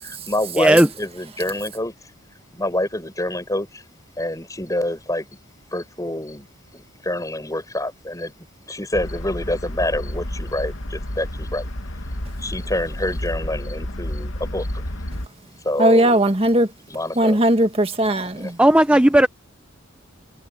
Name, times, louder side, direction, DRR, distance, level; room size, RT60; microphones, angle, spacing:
voice 1, 0.0-1.9 2.5-3.8 4.2-5.3 5.7-6.5 6.7-11.7 12.4-14.7 15.6-16.2 16.9-17.4 18.3-18.5, left 1 dB, 15° left, 6.5 m, -27 dB
voice 2, 0.6-0.9 18.6-19.3, right 1 dB, 5° right, 0.7 m, -14 dB
sound 1, 8.9-15.3, left 1 dB, 75° left, 2.3 m, -30 dB
voice 3, 15.8-16.7 17.2-18.6, right 1 dB, 30° right, 1.7 m, -18 dB
head